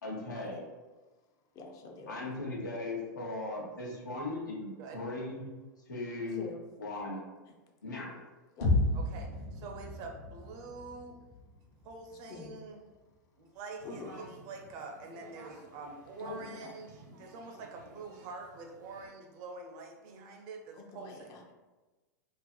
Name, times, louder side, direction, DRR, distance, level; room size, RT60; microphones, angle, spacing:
voice 1, 0.0-0.6 2.1-5.4 5.9-6.4 6.8-7.3 7.8-8.2, left 2 dB, 85° left, -2 dB, 0.7 m, -38 dB
voice 2, 1.5-2.2 6.3-6.6 7.5-7.6 8.6-8.8 12.1-12.6 13.8-14.1 16.2-16.8 20.7-21.5, left 3 dB, 35° left, 3 dB, 0.5 m, -45 dB
sound 1, 8.6-12.6, left 2 dB, 55° left, 0.9 m, -33 dB
voice 3, 8.9-11.2 11.8-12.8 13.4-21.4, right 4 dB, 45° right, 2 dB, 0.5 m, -46 dB
sound 2, 13.8-19.1, right 1 dB, 80° right, 0.8 m, -54 dB
2.4 x 2.4 x 2.3 m, 1.2 s
hypercardioid pair, 100°, 10 cm